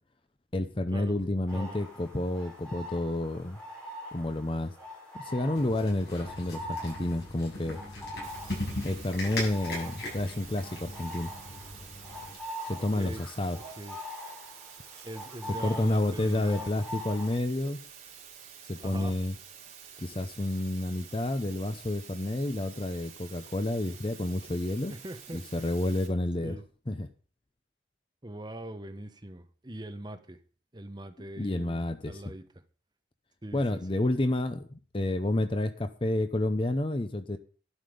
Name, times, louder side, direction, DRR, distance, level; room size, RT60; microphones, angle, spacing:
voice 1, 0.5-3.6 4.1-4.7 5.1-7.8 8.8-11.3 12.7-13.6 15.6-17.8 18.7-19.3 20.0-24.9 25.3-26.6 26.9-27.1 31.4-32.2 33.5-37.4, left 1 dB, 30° left, 0.7 m, -30 dB
sound 1, 1.5-17.4, left 1 dB, 5° left, 5.9 m, -44 dB
sound 2, 5.5-12.4, left 1 dB, 65° left, 7.3 m, -39 dB
sound 3, 8.2-26.1, right 8 dB, 40° right, 3.6 m, -49 dB
voice 2, 12.8-13.3 13.8-14.0 15.0-16.7 18.8-19.2 24.9-25.4 26.4-26.6 28.2-30.4 30.7-32.5 33.4-34.1, right 1 dB, 25° right, 1.1 m, -42 dB
11.5 x 11.5 x 5.2 m
head